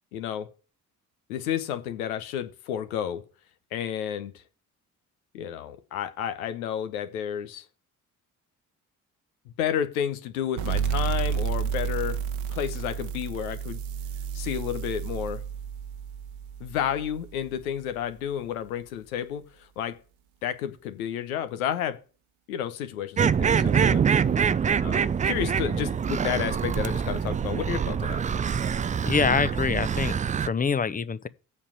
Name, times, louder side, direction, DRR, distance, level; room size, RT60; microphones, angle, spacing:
voice 1, 0.1-0.5 1.3-3.2 3.7-4.3 5.3-7.6 9.6-12.2 12.5-13.8 14.3-15.4 16.6-20.0 20.4-22.0 22.5-24.0 24.8-28.2, left 9 dB, 75° left, 1.1 m, -31 dB
sound 1, 10.6-17.8, right 7 dB, 60° right, 1.1 m, -31 dB
sound 2, 23.2-30.5, right 7 dB, 20° right, 0.4 m, -25 dB
voice 2, 29.1-31.3, left 5 dB, 20° left, 0.8 m, -25 dB
8.6 x 5.4 x 7.6 m
figure-of-eight pair, 45°, 43 cm